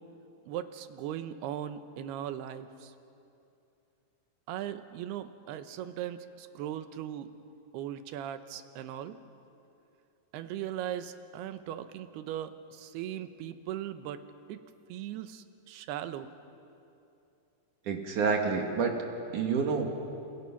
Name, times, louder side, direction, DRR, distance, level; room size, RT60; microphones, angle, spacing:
voice 1, 0.5-2.9 4.5-7.3 7.7-9.2 10.3-14.2 14.5-14.6 14.9-16.3, right 11 dB, 90° right, 10 dB, 3.0 m, -38 dB
voice 2, 17.9-19.0 19.3-19.9, right 5 dB, 60° right, 3 dB, 2.9 m, -28 dB
28.5 x 28.0 x 5.9 m, 2.7 s
omnidirectional pair, 4.5 m